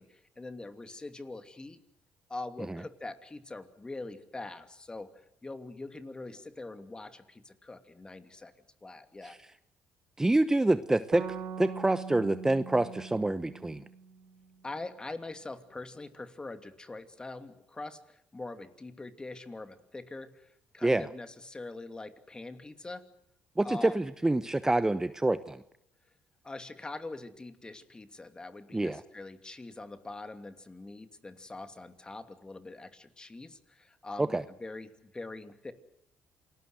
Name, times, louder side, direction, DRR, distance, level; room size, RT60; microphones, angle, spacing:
voice 1, 0.0-1.8 2.3-5.1 5.4-8.5 8.8-9.4 14.6-23.0 23.6-24.1 26.4-35.7, left 2 dB, 20° left, 9 dB, 2.9 m, -43 dB
voice 2, 10.2-11.2 11.6-13.8 20.8-21.1 23.6-25.6 28.7-29.0 34.2-34.4, right 2 dB, 15° right, 13 dB, 1.0 m, -27 dB
sound 1, 11.1-14.6, right 6 dB, 70° right, 2.9 m, -42 dB
28.0 x 20.0 x 8.0 m, 0.75 s
supercardioid pair, 75°, 4 cm